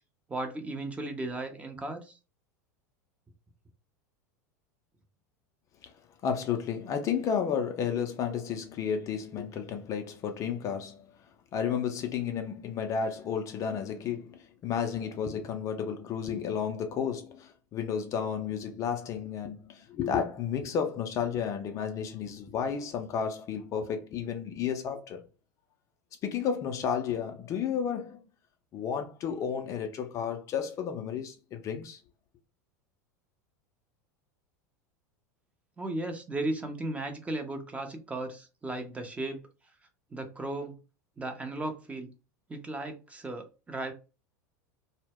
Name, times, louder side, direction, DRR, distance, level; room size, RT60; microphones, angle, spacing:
voice 1, 0.3-2.2 35.8-39.4 40.1-40.8 41.2-42.1 42.5-43.9, right 2 dB, 15° right, 0.6 m, -35 dB
voice 2, 6.2-11.1 11.5-25.2 26.2-28.2 28.7-32.0, left 7 dB, 35° left, 0.4 m, -32 dB
2.1 x 2.1 x 3.5 m
figure-of-eight pair, 80°, 9 cm